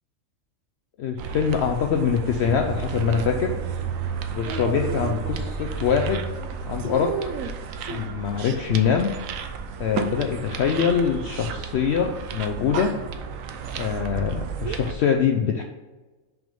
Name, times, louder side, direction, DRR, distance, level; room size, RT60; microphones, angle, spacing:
voice 1, 1.0-3.6 4.3-6.2 6.7-7.1 7.9-9.1 9.8-12.9 13.7-15.6, left 7 dB, 65° left, 3 dB, 0.7 m, -24 dB
sound 1, 1.2-14.9, right 6 dB, 75° right, 1.0 m, -32 dB
6.0 x 3.6 x 5.3 m, 1.2 s
omnidirectional pair, 1.4 m